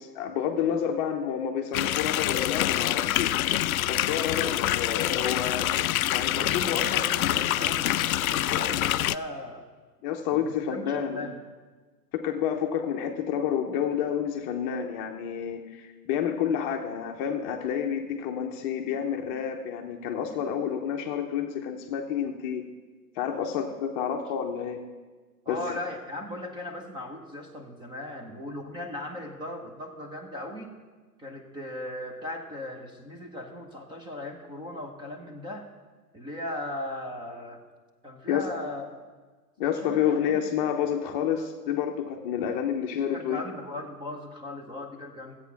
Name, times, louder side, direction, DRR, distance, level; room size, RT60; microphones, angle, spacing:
voice 1, 0.0-3.3 3.9-7.1 8.5-8.6 10.0-11.3 12.1-22.7 23.1-24.8 25.5-25.6 38.3-38.5 39.6-43.4, left 8 dB, 30° left, 3 dB, 0.8 m, -29 dB
sound 1, 1.7-9.2, left 13 dB, 60° left, 0.5 m, -26 dB
voice 2, 6.4-9.7 10.3-11.4 25.4-30.7 31.2-35.7 36.1-37.6 38.0-39.0 39.8-40.4 43.1-45.4, left 1 dB, 10° right, 3 dB, 0.9 m, -38 dB
13.5 x 8.5 x 5.8 m, 1.4 s
hypercardioid pair, 130°, 48 cm